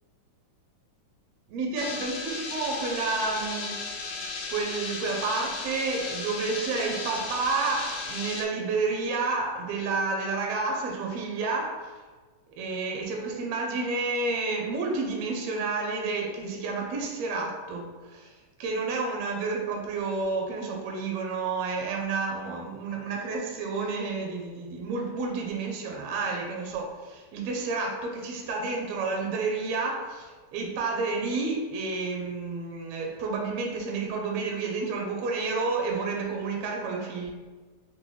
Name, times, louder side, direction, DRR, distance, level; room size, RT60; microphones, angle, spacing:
voice 1, 1.5-4.1 4.5-11.9 12.6-18.3 18.6-37.3, right 3 dB, 80° right, 0 dB, 1.5 m, -30 dB
sound 1, 1.8-8.4, left 4 dB, 85° left, 2.0 m, -35 dB
5.3 x 2.2 x 3.1 m, 1.4 s
omnidirectional pair, 3.4 m